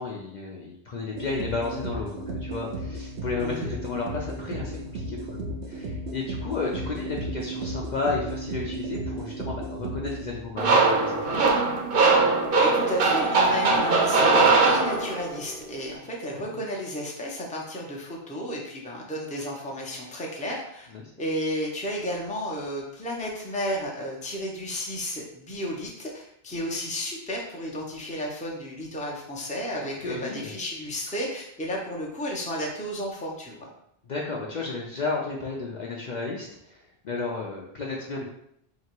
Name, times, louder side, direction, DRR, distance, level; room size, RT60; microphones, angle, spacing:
voice 1, 0.0-5.4 5.7-11.4 16.3-16.6 20.9-21.1 29.8-30.5 34.0-38.2, left 3 dB, 55° left, -2 dB, 0.6 m, -33 dB
sound 1, 1.1-10.7, right 1 dB, 90° right, 1.0 m, -34 dB
sound 2, 10.6-15.4, right 3 dB, 60° right, 0.9 m, -21 dB
voice 2, 12.6-20.9 21.2-33.7, equal, 10° left, -2 dB, 0.5 m, -32 dB
2.9 x 2.8 x 4.4 m, 0.75 s
omnidirectional pair, 1.1 m